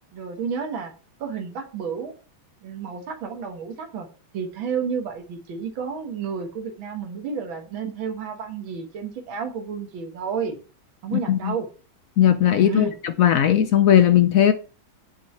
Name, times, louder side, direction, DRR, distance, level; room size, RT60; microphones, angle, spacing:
voice 1, 0.1-0.9 1.2-2.1 2.6-4.1 4.3-10.6 11.0-11.7 12.5-12.9, right 6 dB, 80° right, 2.1 m, -31 dB
voice 2, 11.1-11.5 12.2-14.5, left 10 dB, 75° left, 0.7 m, -18 dB
7.8 x 6.8 x 4.3 m
omnidirectional pair, 2.2 m